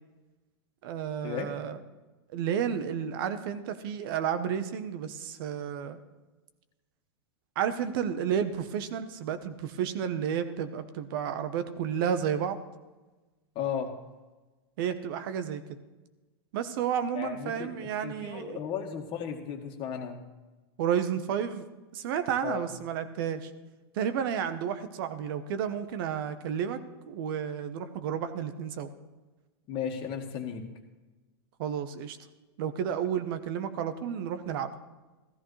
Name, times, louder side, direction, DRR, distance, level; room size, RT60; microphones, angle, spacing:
voice 1, 0.8-1.8 2.3-6.0 7.6-12.6 14.8-15.8 16.5-18.6 20.8-21.7 21.9-23.5 23.9-26.8 27.1-28.9 31.6-32.2 32.6-34.7, right 8 dB, 60° right, 10 dB, 1.0 m, -31 dB
voice 2, 13.6-13.9 17.1-17.7 18.0-20.2 22.4-22.6 29.7-30.6, left 8 dB, 40° left, 3 dB, 1.8 m, -35 dB
15.0 x 13.5 x 3.3 m, 1.2 s
hypercardioid pair, 115°, 13 cm